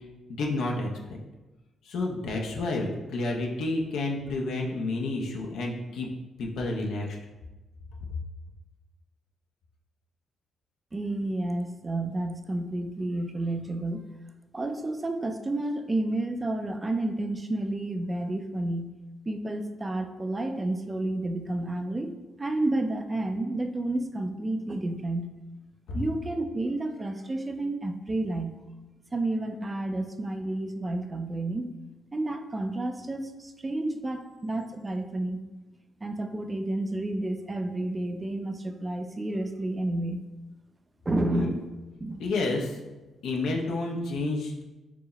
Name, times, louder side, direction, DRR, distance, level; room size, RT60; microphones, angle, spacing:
voice 1, 0.3-1.2 1.8-6.1 6.4-7.2 25.9-26.0 41.3-41.5 42.2-42.8 43.2-44.6, left 2 dB, 80° left, 0 dB, 0.6 m, -30 dB
voice 2, 10.9-14.0 14.5-18.9 19.3-25.3 25.9-28.6 29.1-31.7 32.1-35.4 36.0-40.2 41.1-41.7 42.0-42.2, right 2 dB, 20° right, 6 dB, 0.3 m, -30 dB
4.6 x 2.0 x 3.9 m, 1.1 s
cardioid pair, 105°, 0 cm